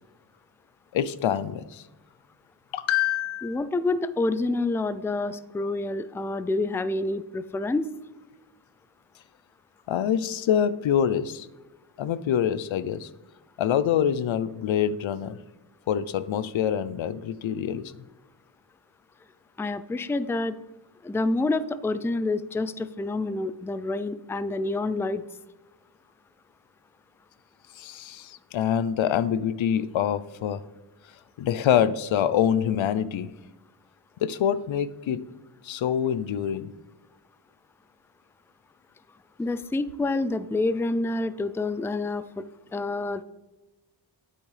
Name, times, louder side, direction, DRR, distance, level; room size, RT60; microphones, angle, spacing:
voice 1, 0.9-1.8 2.7-3.6 9.9-11.5 12.0-13.1 13.6-15.4 15.9-17.9 27.8-30.6 31.4-33.3 34.2-35.2 35.6-36.8, left 9 dB, 85° left, 15 dB, 0.6 m, -25 dB
voice 2, 3.4-7.9 19.6-20.6 21.0-25.2 39.4-42.3 42.7-43.2, left 2 dB, 5° left, 14 dB, 0.3 m, -28 dB
8.9 x 8.5 x 3.3 m, 1.0 s
cardioid pair, 70°, 45 cm